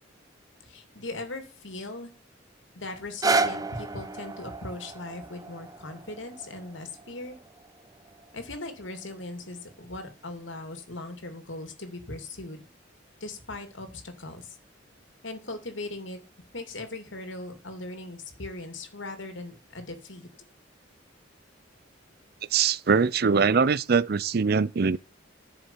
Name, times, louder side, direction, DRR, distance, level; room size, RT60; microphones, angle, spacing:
voice 1, 0.6-2.1 2.7-7.4 8.3-12.7 13.2-14.6 15.2-16.2 16.5-20.3, left 2 dB, 80° left, 2.8 m, -39 dB
sound 1, 3.0-9.0 9.7-9.8, right 3 dB, 20° right, 0.8 m, -32 dB
voice 2, 22.5-25.0, right 5 dB, 55° right, 0.5 m, -22 dB
11.0 x 7.1 x 7.2 m
head